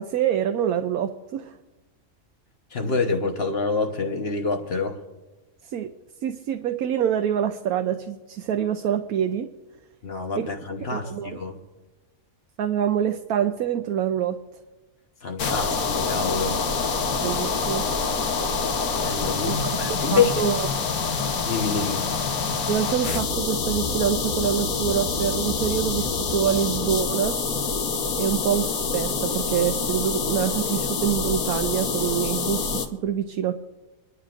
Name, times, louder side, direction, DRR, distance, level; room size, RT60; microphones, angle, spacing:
voice 1, 0.0-1.6 5.6-5.9 6.2-9.5 10.4-10.5 10.9-11.4 12.6-14.4 17.2-17.9 19.4-20.7 22.7-27.3 28.2-33.5, right 9 dB, 85° right, 1.1 m, -26 dB
voice 2, 2.7-5.0 10.0-11.6 15.2-16.6 19.0-20.4 21.4-22.1, left 4 dB, 50° left, 1.2 m, -26 dB
sound 1, 15.4-32.9, left 4 dB, 85° left, 1.5 m, -26 dB
26.0 x 11.5 x 2.5 m
omnidirectional pair, 1.5 m